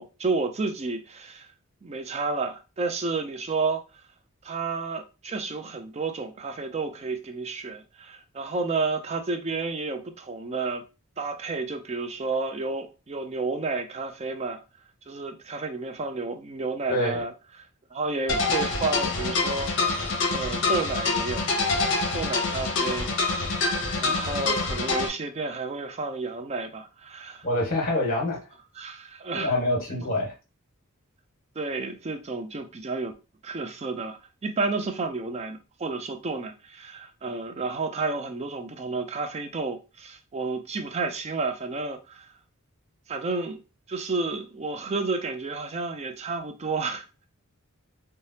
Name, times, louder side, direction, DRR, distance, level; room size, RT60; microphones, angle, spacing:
voice 1, 0.0-1.5 1.8-3.8 4.4-10.8 11.2-14.6 15.1-21.4 22.1-23.1 24.0-27.5 28.8-29.5 29.9-30.1 31.6-33.1 33.4-42.3 43.1-43.6 43.9-47.3, right 3 dB, 30° right, 0.4 m, -31 dB
voice 2, 16.9-17.2 27.4-28.4 29.3-30.3, left 1 dB, 40° left, 1.4 m, -26 dB
sound 1, 18.3-25.1, left 3 dB, 55° left, 0.8 m, -26 dB
3.3 x 2.2 x 2.7 m
head